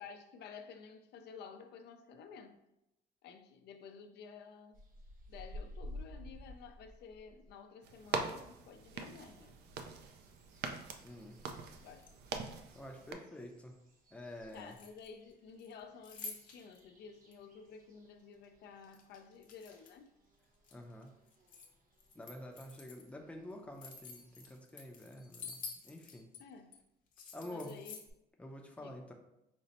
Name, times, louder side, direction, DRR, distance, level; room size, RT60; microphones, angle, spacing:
voice 1, 0.0-2.6 3.2-4.8 5.3-9.6 11.7-12.1 14.5-20.1 26.4-26.8 27.4-28.0 28.8-29.1, left 5 dB, 85° left, 6 dB, 0.5 m, -52 dB
sound 1, 4.7-7.8 8.1-24.6, left 1 dB, 55° right, 0.8 m, -56 dB
sound 2, 7.8-13.1, right 5 dB, 80° right, 0.4 m, -43 dB
voice 2, 11.0-11.4 12.7-13.7 14.1-14.8 20.7-21.1 22.2-26.3 27.3-27.8 28.4-29.1, left 1 dB, 5° left, 2 dB, 0.5 m, -48 dB
sound 3, 11.9-12.6 14.5-15.3 15.6-16.8 17.3-17.4 18.8-20.1 20.4-21.7 22.0-23.1 23.5-26.4 26.7-26.8 27.1-28.1, left 4 dB, 55° left, 0.8 m, -50 dB
5.1 x 2.0 x 4.1 m, 0.86 s
cardioid pair, 155°, 17 cm